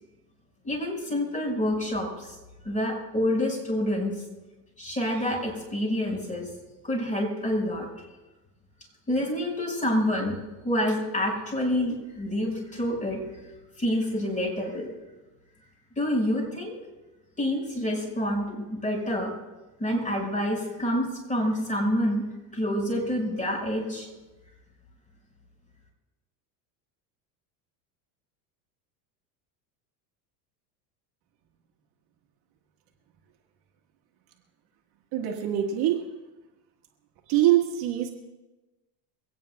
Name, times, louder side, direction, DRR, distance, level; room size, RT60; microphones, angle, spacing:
voice 1, 0.6-2.4 2.6-4.1 4.8-6.5 6.8-7.9 9.1-10.4 10.6-13.2 13.8-14.9 16.0-16.8 17.4-19.3 19.8-22.2 22.5-24.1, left 1 dB, 15° left, 0 dB, 5.6 m, -27 dB
voice 2, 35.1-36.0 37.3-38.1, right 12 dB, 50° right, 1 dB, 1.7 m, -23 dB
23.5 x 18.0 x 2.3 m, 1.1 s
supercardioid pair, 120°, 50 cm